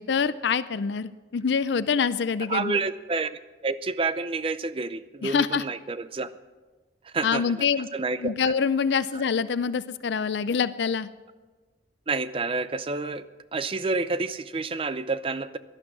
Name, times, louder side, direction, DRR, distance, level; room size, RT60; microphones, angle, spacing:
voice 1, 0.0-2.8 5.2-5.6 7.2-7.9 8.2-11.1, left 6 dB, 75° left, 15 dB, 0.5 m, -25 dB
voice 2, 2.5-6.3 7.0-8.5 12.1-13.2 13.5-15.6, right 3 dB, 30° right, 13 dB, 0.5 m, -29 dB
17.0 x 12.0 x 6.2 m, 1.3 s
head